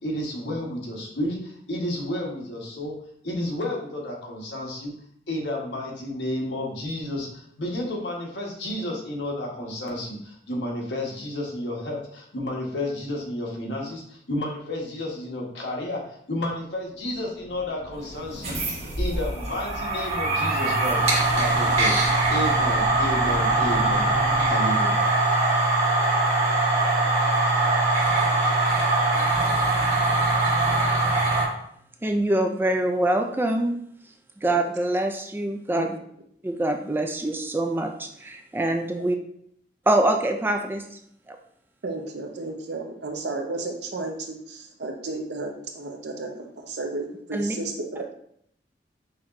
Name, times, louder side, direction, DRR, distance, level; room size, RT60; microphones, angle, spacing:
voice 1, 0.0-2.9 3.2-4.9 5.3-18.6 19.0-21.0 21.3-21.9 22.3-24.1 24.4-25.1, left 1 dB, 75° left, -2 dB, 1.2 m, -31 dB
sound 1, 17.0-24.5, equal, 60° left, 1.7 m, -39 dB
sound 2, 18.3-31.4, right 2 dB, 40° right, 1.3 m, -22 dB
voice 2, 32.0-33.8 34.4-36.0 36.4-39.2 39.9-40.8 41.3-41.4 47.3-47.6, right 1 dB, 10° right, 5 dB, 0.3 m, -24 dB
voice 3, 41.8-48.1, right 2 dB, 70° right, 3 dB, 0.7 m, -33 dB
6.2 x 2.9 x 2.5 m, 0.68 s
head